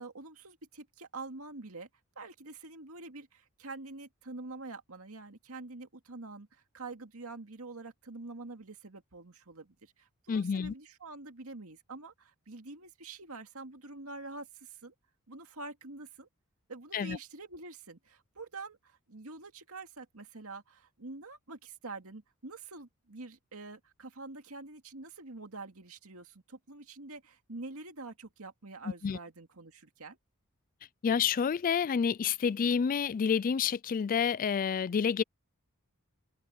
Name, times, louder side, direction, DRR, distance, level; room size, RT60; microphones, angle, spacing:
voice 1, 0.0-1.9 2.2-14.9 15.3-16.3 16.7-30.2, right 3 dB, 75° right, 2.3 m, -46 dB
voice 2, 10.3-10.7 16.9-17.2 29.0-29.2 31.0-35.2, left 6 dB, 40° left, 0.3 m, -29 dB
open air
head